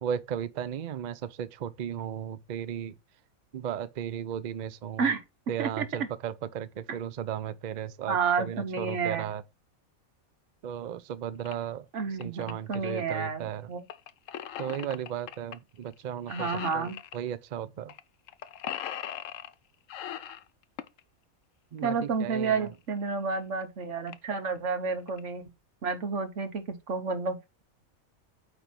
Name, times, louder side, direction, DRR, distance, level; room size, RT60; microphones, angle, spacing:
voice 1, 0.0-2.9 3.5-5.1 5.5-9.4 10.6-11.8 12.2-13.6 14.6-16.5 16.7-17.9 21.7-22.7, right 9 dB, 85° right, 0.4 m, -35 dB
voice 2, 5.6-6.1 8.1-9.3 11.9-13.8 16.3-17.0 21.8-25.5 25.8-27.6, right 5 dB, 60° right, 1.4 m, -30 dB
sound 1, 11.4-11.5 12.0-12.8 13.9-15.6 15.9-16.0 16.3-17.2 17.9-18.0 18.3-19.5 19.9-21.0 22.7-22.8 23.3-23.4 23.6-23.7 24.1-24.4 24.9-25.2, left 10 dB, 70° left, 1.0 m, -39 dB
8.9 x 3.4 x 4.3 m
omnidirectional pair, 1.5 m